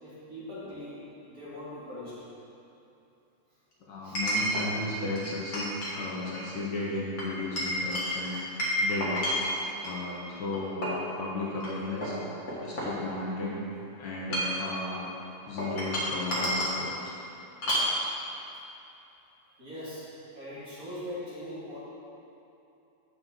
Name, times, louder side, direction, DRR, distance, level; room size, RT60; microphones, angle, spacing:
voice 1, 0.0-2.2 4.0-4.2 19.6-20.1 20.3-21.8, left 1 dB, 40° right, -10 dB, 2.3 m, -41 dB
Chink clink, 0.7-0.8 4.2-4.7 5.2-6.0 6.3-6.5 7.2-10.0 10.5-11.1 11.6-11.7 12.0-13.4 14.1-14.7 15.6-16.8 17.6-17.9, equal, 45° left, 1.8 m, -30 dB
voice 2, 3.8-8.4 8.8-9.2 9.8-12.2 12.6-13.6 14.0-15.1 15.4-17.2, left 2 dB, 60° left, -5 dB, 1.5 m, -35 dB
7.7 x 6.7 x 3.7 m, 2.8 s
omnidirectional pair, 2.4 m